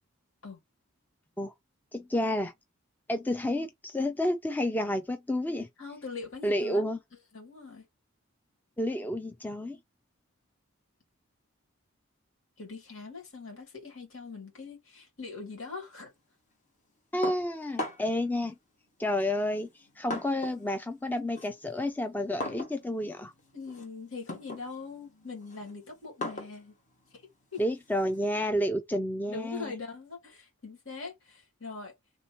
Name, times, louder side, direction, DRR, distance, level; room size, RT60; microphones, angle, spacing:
voice 1, 1.9-2.5 3.1-5.7 6.4-7.0 8.8-9.8 17.1-18.5 19.0-19.7 20.0-23.3 27.6-29.7, left 1 dB, 10° left, 0.3 m, -30 dB
voice 2, 5.8-6.9 7.3-7.8 12.6-16.1 23.5-26.7 27.5-27.6 29.3-31.9, left 4 dB, 75° left, 2.2 m, -42 dB
sound 1, 17.2-18.2 19.1-20.7 21.0-28.3, left 1 dB, 35° left, 1.1 m, -41 dB
3.5 x 2.9 x 4.3 m
head